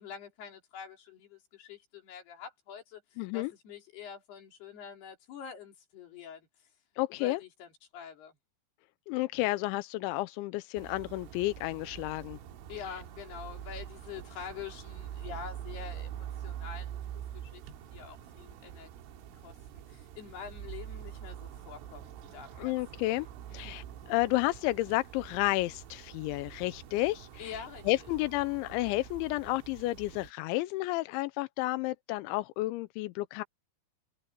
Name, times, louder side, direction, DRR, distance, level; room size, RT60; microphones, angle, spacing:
voice 1, 0.0-6.7 7.1-8.4 12.7-22.7 23.6-23.8 27.4-28.1, left 7 dB, 55° left, 5.2 m, -46 dB
voice 2, 3.2-3.5 7.0-7.4 9.1-12.4 22.6-23.3 23.5-27.6 27.9-33.4, left 19 dB, 85° left, 2.8 m, -31 dB
sound 1, 10.8-30.3, right 10 dB, 75° right, 4.1 m, -45 dB
omnidirectional pair, 5.7 m